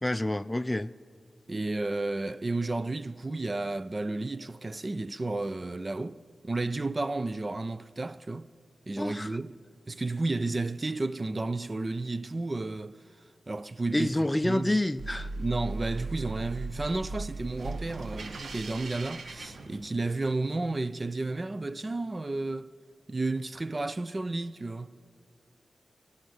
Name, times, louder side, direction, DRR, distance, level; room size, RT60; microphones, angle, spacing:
voice 1, 0.0-0.9 9.0-9.3 13.9-15.3, left 1 dB, 20° left, 0.4 m, -28 dB
voice 2, 1.5-8.5 8.9-9.6 9.9-13.0 13.5-14.8 15.4-22.7 23.1-25.0, right 2 dB, 40° right, 0.5 m, -32 dB
sound 1, 15.0-20.3, right 3 dB, 75° right, 1.0 m, -38 dB
23.0 x 9.7 x 6.4 m
cardioid pair, 45°, 0 cm